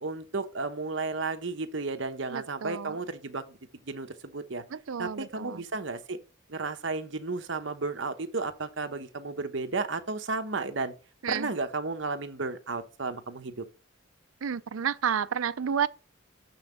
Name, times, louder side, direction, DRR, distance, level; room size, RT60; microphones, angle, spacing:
voice 1, 0.0-3.6 3.9-4.6 5.0-6.2 6.5-10.9 11.3-13.6, right 3 dB, 65° right, 1.0 m, -33 dB
voice 2, 2.3-3.0 4.7-5.6 11.2-11.5 14.4-15.9, right 7 dB, 90° right, 0.5 m, -31 dB
7.0 x 5.7 x 5.4 m
head